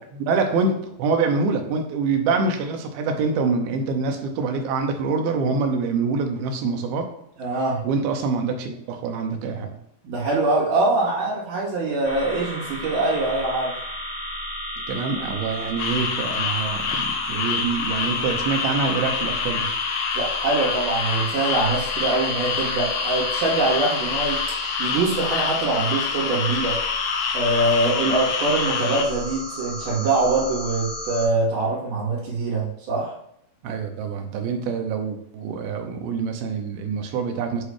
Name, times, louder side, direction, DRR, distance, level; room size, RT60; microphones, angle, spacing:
voice 1, 0.2-7.1 7.8-9.7 14.9-19.7 28.1-28.2 33.6-37.6, right 4 dB, 75° right, 4 dB, 2.3 m, -25 dB
voice 2, 7.4-7.8 10.0-13.7 20.1-24.4 24.8-26.8 27.3-33.1, right 2 dB, 55° right, -5 dB, 3.1 m, -23 dB
sound 1, 12.0-31.3, equal, 20° left, 0.6 m, -34 dB
sound 2, 15.8-29.1, left 6 dB, 80° left, 2.3 m, -26 dB
8.4 x 3.1 x 4.8 m, 0.71 s
omnidirectional pair, 5.0 m